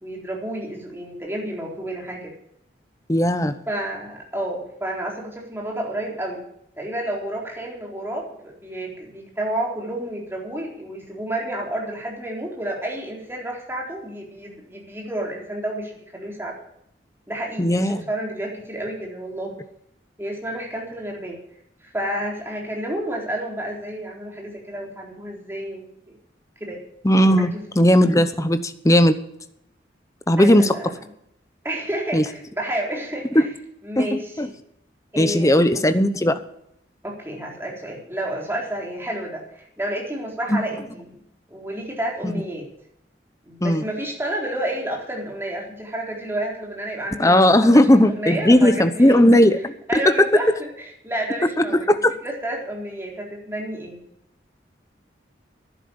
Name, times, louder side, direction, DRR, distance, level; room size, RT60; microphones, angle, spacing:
voice 1, 0.0-2.3 3.7-6.4 6.8-16.6 17.3-19.6 20.2-21.4 21.8-26.2 26.6-26.8 27.4-27.6 30.4-30.9 31.6-33.5 33.8-34.4 35.1-36.0 37.0-41.1 41.5-42.7 43.5-49.2 49.9-54.0, right 1 dB, 15° right, -1 dB, 3.9 m, -30 dB
voice 2, 3.1-3.5 17.6-18.0 27.0-29.2 30.3-30.9 32.1-32.2 33.3-33.5 34.0-34.5 35.2-36.4 40.5-40.6 42.2-42.3 43.6-43.8 47.2-50.1 51.6-52.1, left 1 dB, 20° left, 11 dB, 0.9 m, -17 dB
11.5 x 10.0 x 7.1 m, 0.75 s
head